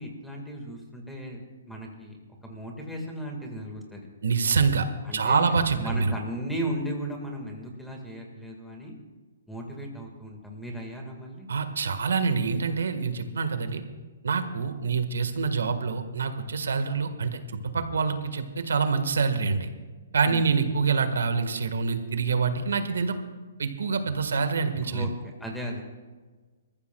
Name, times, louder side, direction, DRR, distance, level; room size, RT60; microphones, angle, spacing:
voice 1, 0.0-1.4 1.7-2.2 2.4-4.1 5.0-9.0 9.5-11.5 20.2-20.5 24.9-25.1 25.4-25.8, right 1 dB, ahead, 1 dB, 1.7 m, -36 dB
voice 2, 4.2-6.1 11.5-13.8 14.2-19.7 20.1-23.2 23.6-25.1, right 5 dB, 90° right, 8 dB, 1.4 m, -26 dB
26.0 x 14.0 x 2.3 m, 1.4 s
hypercardioid pair, 170°, 0 cm